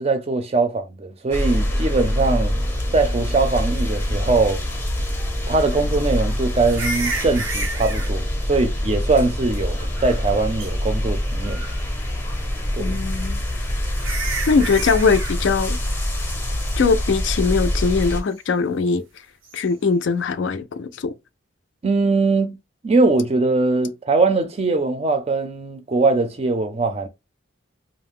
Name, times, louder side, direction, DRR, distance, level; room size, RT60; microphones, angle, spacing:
voice 1, 0.0-2.6 2.9-4.6 5.5-11.6 12.7-13.0 21.8-22.6 22.8-27.1, right 3 dB, 30° right, 0.5 m, -21 dB
sound 1, 1.3-18.2, left 1 dB, 10° left, 0.6 m, -25 dB
sound 2, 6.6-8.1 9.8-10.3 10.6-10.7 11.4-11.9 13.3-13.4 13.9-15.4 19.4-19.6, right 3 dB, 85° right, 0.7 m, -30 dB
voice 2, 12.8-13.4 14.5-15.8 16.8-19.0 19.5-21.1, left 5 dB, 60° left, 0.4 m, -21 dB
2.5 x 2.0 x 3.6 m
head